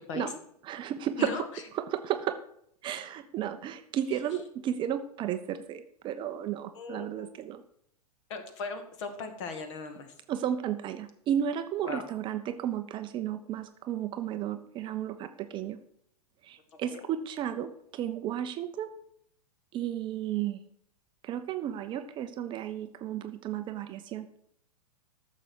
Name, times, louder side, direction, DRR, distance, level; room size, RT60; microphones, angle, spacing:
voice 1, 0.6-1.5 1.7-2.4 2.8-7.6 10.3-15.8 16.4-18.9 19.7-20.6 21.2-24.3, right 10 dB, 25° right, 9 dB, 0.7 m, -33 dB
voice 2, 6.7-7.3 8.3-10.1 11.8-12.0 16.7-17.0, left 4 dB, 45° left, 8 dB, 2.2 m, -38 dB
13.5 x 6.9 x 6.3 m, 0.71 s
figure-of-eight pair, 105°, 21 cm